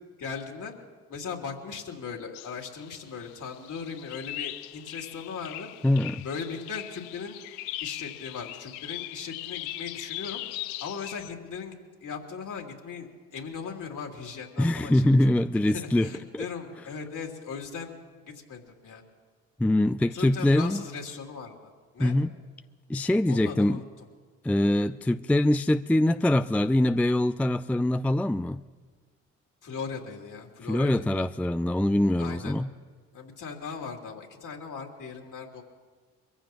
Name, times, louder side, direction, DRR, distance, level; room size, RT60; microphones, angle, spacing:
voice 1, 0.2-0.7 1.1-5.7 6.2-7.4 7.8-10.4 10.8-11.7 12.0-15.3 15.6-17.9 18.5-19.0 20.1-22.1 23.3-24.1 29.6-31.3 32.2-32.6 33.1-35.6, left 5 dB, 50° left, 1 dB, 3.1 m, -38 dB
sound 1, 2.3-11.3, left 16 dB, 70° left, 0.6 m, -40 dB
voice 2, 5.8-6.2 14.6-16.1 16.3-16.4 19.6-20.8 22.0-22.3 22.9-23.8 24.4-28.6 30.7-32.7, left 1 dB, 5° left, 12 dB, 0.4 m, -23 dB
25.0 x 15.0 x 3.0 m, 1.4 s
hypercardioid pair, 45°, 38 cm